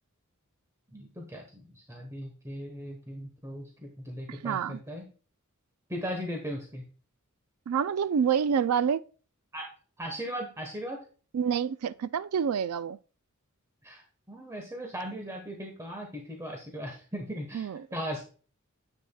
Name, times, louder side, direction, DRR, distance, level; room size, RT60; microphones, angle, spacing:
voice 1, 0.9-5.0 5.9-6.8 9.5-9.7 10.0-11.0 13.8-18.2, equal, 15° right, 1.2 m, -38 dB
voice 2, 4.3-4.8 7.7-9.0 11.3-13.0 17.5-17.8, right 7 dB, 80° right, 0.4 m, -27 dB
9.7 x 7.8 x 2.3 m
head